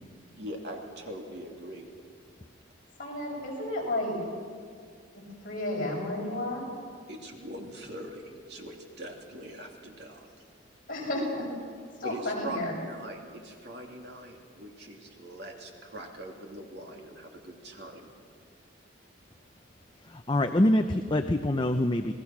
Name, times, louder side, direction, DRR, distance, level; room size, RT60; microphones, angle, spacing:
voice 1, 0.4-1.8 7.1-10.3 12.0-18.1, right 1 dB, 55° right, 1 dB, 2.9 m, -42 dB
voice 2, 3.0-4.2 5.4-6.7 10.9-11.5 12.0-12.7, left 1 dB, 45° left, -3 dB, 6.8 m, -32 dB
voice 3, 20.0-22.1, left 1 dB, 25° left, 6 dB, 0.6 m, -25 dB
28.5 x 19.0 x 6.1 m, 2.1 s
head